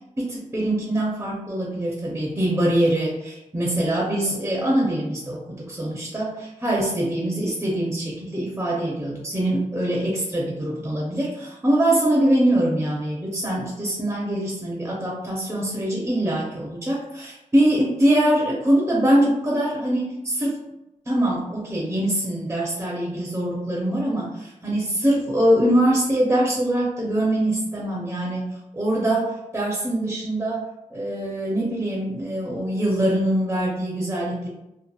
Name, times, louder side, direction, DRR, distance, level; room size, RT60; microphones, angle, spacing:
voice 1, 0.2-20.6 21.1-34.5, right 1 dB, 15° right, -4 dB, 0.6 m, -23 dB
2.8 x 2.4 x 2.3 m, 0.92 s
wide cardioid pair, 100°, 14 cm